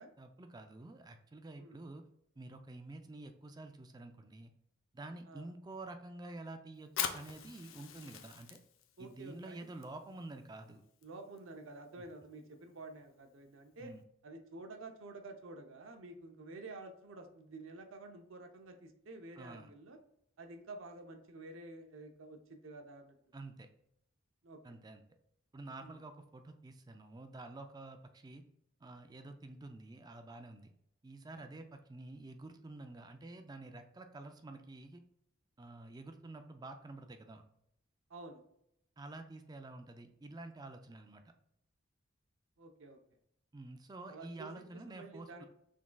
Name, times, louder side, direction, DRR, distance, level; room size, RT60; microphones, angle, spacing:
voice 1, 0.2-2.0 2.4-4.5 4.9-8.6 9.0-10.8 12.0-12.1 13.8-14.0 19.4-19.7 23.3-23.7 24.6-25.0 25.5-28.4 28.8-30.7 31.0-35.0 35.6-37.4 39.0-41.2 43.5-45.5, right 2 dB, 20° right, 7 dB, 0.4 m, -49 dB
Fire, 6.8-14.0, left 8 dB, 85° left, 0.6 m, -46 dB
voice 2, 9.0-9.7 11.0-13.9 14.2-20.0 20.4-23.2 24.4-24.6 25.8-26.0 38.1-38.4 42.6-43.0 44.1-45.5, right 2 dB, 75° right, 6 dB, 0.7 m, -50 dB
6.1 x 3.6 x 2.3 m, 0.77 s
head